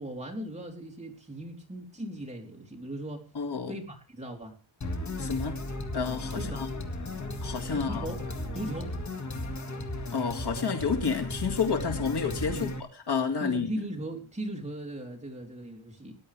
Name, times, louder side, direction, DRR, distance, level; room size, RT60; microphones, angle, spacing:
voice 1, 0.0-3.3 3.7-4.5 6.3-6.7 7.7-8.2 8.5-9.0 12.5-12.8 13.4-16.2, right 1 dB, 15° right, 0 dB, 3.5 m, -38 dB
voice 2, 3.3-3.7 5.1-5.6 5.9-6.7 7.4-8.1 10.1-12.7 13.1-13.7, left 5 dB, 55° left, 4 dB, 2.2 m, -29 dB
sound 1, 4.8-12.8, left 2 dB, 35° left, 2.2 m, -35 dB
19.5 x 11.0 x 3.4 m, 0.34 s
wide cardioid pair, 125°, 47 cm